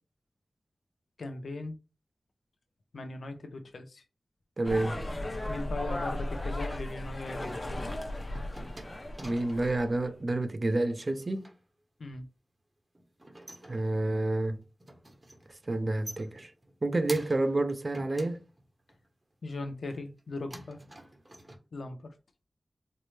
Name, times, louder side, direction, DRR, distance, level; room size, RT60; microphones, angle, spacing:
voice 1, 1.2-1.8 2.9-4.0 5.5-7.9 12.0-12.2 19.4-20.8 21.7-22.1, left 2 dB, 85° left, 0.6 m, -39 dB
sound 1, 4.6-10.0, left 1 dB, 35° left, 0.7 m, -36 dB
voice 2, 4.6-5.0 9.2-11.5 13.7-14.6 15.7-16.5 16.8-18.4, right 2 dB, 45° right, 0.5 m, -29 dB
sound 2, 8.1-10.0 11.0-11.6 12.9-14.3 14.6-15.5 15.8-17.6 17.9-19.1 19.6-20.2 20.5-21.6, right 1 dB, 30° right, 0.9 m, -48 dB
4.3 x 2.1 x 3.2 m
wide cardioid pair, 70°, 0 cm